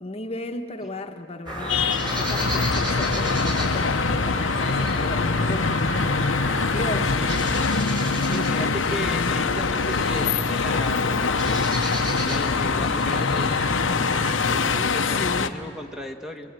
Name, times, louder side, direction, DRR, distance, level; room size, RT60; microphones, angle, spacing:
voice 1, 0.0-7.2 8.0-8.6 15.0-15.5, left 1 dB, 30° left, 5 dB, 1.2 m, -35 dB
sound 1, 1.5-14.6, equal, 25° right, 5.0 m, -32 dB
sound 2, 1.7-15.5, left 4 dB, 80° left, 0.9 m, -24 dB
voice 2, 7.1-7.4 8.3-11.6 12.3-16.5, equal, ahead, 3 dB, 1.3 m, -36 dB
28.5 x 22.0 x 9.1 m, 2.6 s
head